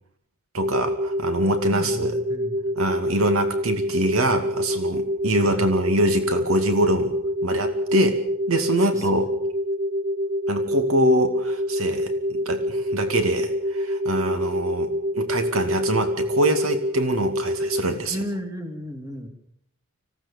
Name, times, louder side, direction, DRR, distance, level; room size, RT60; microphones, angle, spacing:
voice 1, 0.5-2.1 2.8-7.1 7.4-8.2 8.5-9.3 10.5-18.2, right 1 dB, 70° right, 7 dB, 2.4 m, -24 dB
sound 1, 0.6-17.9, equal, 40° right, 0.8 m, -26 dB
voice 2, 1.7-2.6 5.4-5.6 8.8-9.3 18.1-19.3, equal, 15° right, 5 dB, 2.8 m, -34 dB
25.5 x 16.5 x 7.2 m, 0.69 s
head